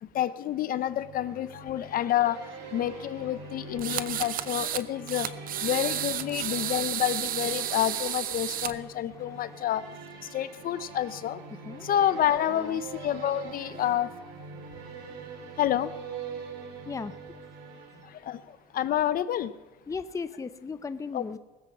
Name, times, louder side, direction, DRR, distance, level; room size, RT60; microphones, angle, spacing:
voice 1, 0.0-5.3 5.6-9.8 10.2-11.4 11.8-14.1 15.6-15.9 18.0-19.5 21.1-21.2, left 11 dB, 60° left, 15 dB, 0.7 m, -29 dB
sound 1, 0.9-18.6, right 5 dB, 90° right, 2.5 m, -44 dB
sound 2, 3.8-4.8 5.1-8.7, right 11 dB, 60° right, 0.7 m, -32 dB
voice 2, 8.9-9.4 11.6-11.9 12.6-12.8 16.9-17.1 19.9-21.4, left 4 dB, 20° left, 12 dB, 0.6 m, -37 dB
19.0 x 7.6 x 7.2 m, 1.1 s
cardioid pair, 110°, 17 cm